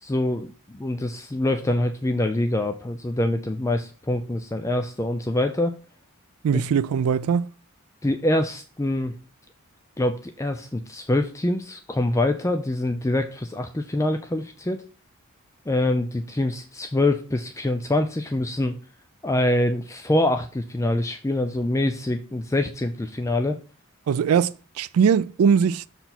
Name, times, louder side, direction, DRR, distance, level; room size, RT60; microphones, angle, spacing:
voice 1, 0.0-5.8 6.5-6.6 8.0-9.1 10.0-14.8 15.7-18.7 19.2-23.6, left 1 dB, 15° left, 0.5 m, -25 dB
voice 2, 6.4-7.5 24.1-25.9, right 7 dB, 70° right, 0.3 m, -21 dB
6.8 x 4.4 x 5.9 m
head